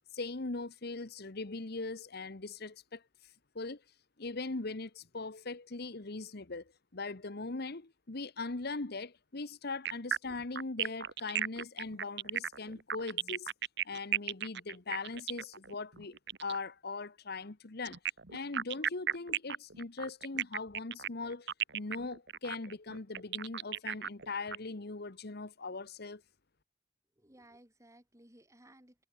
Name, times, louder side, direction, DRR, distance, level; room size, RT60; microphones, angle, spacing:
voice 1, 0.1-3.8 4.2-13.5 13.8-18.0 18.3-26.2, left 3 dB, 55° left, 1.2 m, -40 dB
sound 1, 9.9-16.6 17.9-24.6, right 9 dB, 65° right, 2.0 m, -35 dB
voice 2, 27.2-29.1, right 1 dB, 15° right, 7.8 m, -59 dB
head